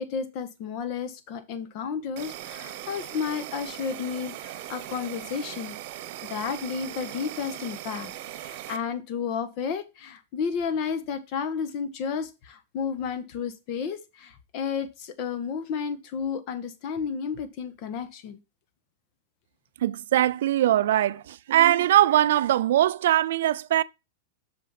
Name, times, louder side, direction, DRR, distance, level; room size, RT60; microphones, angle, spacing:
voice 1, 0.0-5.8 6.3-18.4, left 6 dB, 45° left, 1.4 m, -32 dB
Insect, 2.2-8.8, right 13 dB, 55° right, 0.9 m, -39 dB
voice 2, 19.8-23.8, right 12 dB, 75° right, 0.3 m, -21 dB
6.5 x 5.1 x 5.7 m
hypercardioid pair, 130°, 0 cm